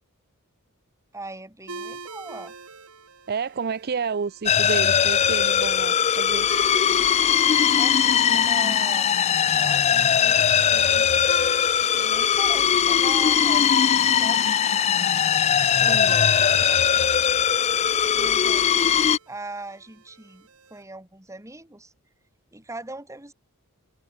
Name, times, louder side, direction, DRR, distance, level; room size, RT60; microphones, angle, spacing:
voice 1, 1.1-2.5 7.8-9.1 9.5-11.2 11.9-14.5 15.6-17.0 18.1-18.8 19.3-21.9 22.5-23.3, right 2 dB, 15° right, 2.8 m, -40 dB
sound 1, 1.7-20.8, right 4 dB, 70° right, 4.5 m, -45 dB
voice 2, 3.3-6.5 15.9-16.2, right 5 dB, 45° right, 0.6 m, -30 dB
sound 2, 4.5-19.2, left 8 dB, 30° left, 0.3 m, -20 dB
head